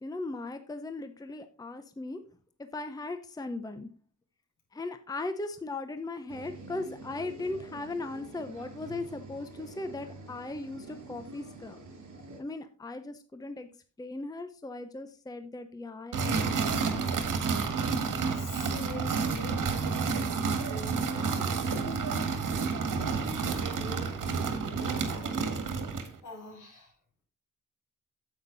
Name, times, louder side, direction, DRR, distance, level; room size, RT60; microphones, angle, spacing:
voice 1, 0.0-2.2 2.6-3.9 4.7-11.8 12.4-13.7 14.0-17.1, left 2 dB, 10° left, 9 dB, 0.7 m, -38 dB
sound 1, 6.3-12.4, right 3 dB, 65° right, 5.1 m, -47 dB
sound 2, 16.1-26.2, right 5 dB, 90° right, 1.9 m, -30 dB
voice 2, 18.3-20.2 20.7-24.1 24.7-25.4 26.2-26.9, left 2 dB, 75° left, 1 dB, 5.9 m, -46 dB
9.5 x 8.0 x 4.0 m, 0.35 s
wide cardioid pair, 175°, 31 cm